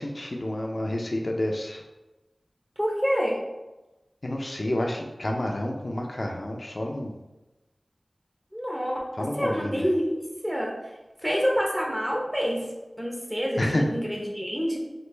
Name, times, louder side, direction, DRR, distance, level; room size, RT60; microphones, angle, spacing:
voice 1, 0.0-1.8 4.2-7.1 9.2-9.8 13.6-13.8, left 1 dB, 55° left, 1 dB, 0.4 m, -29 dB
voice 2, 2.8-3.4 8.5-10.7 11.2-12.7 13.0-14.8, equal, 10° right, -1 dB, 0.8 m, -27 dB
3.1 x 2.4 x 3.2 m, 1.1 s
wide cardioid pair, 45°, 0 cm